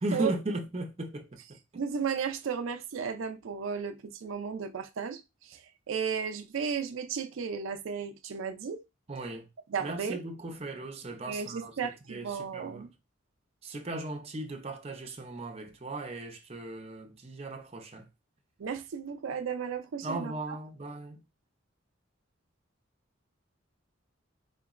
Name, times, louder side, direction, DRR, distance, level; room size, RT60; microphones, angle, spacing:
voice 1, 0.0-1.3 9.1-9.5 9.8-12.9 13.6-18.1 20.0-21.2, right 2 dB, 30° right, 0.5 m, -37 dB
voice 2, 1.7-5.6 5.9-8.8 9.7-10.2 11.3-12.9 18.6-20.3, right 6 dB, 85° right, 0.4 m, -34 dB
4.4 x 2.9 x 2.4 m
head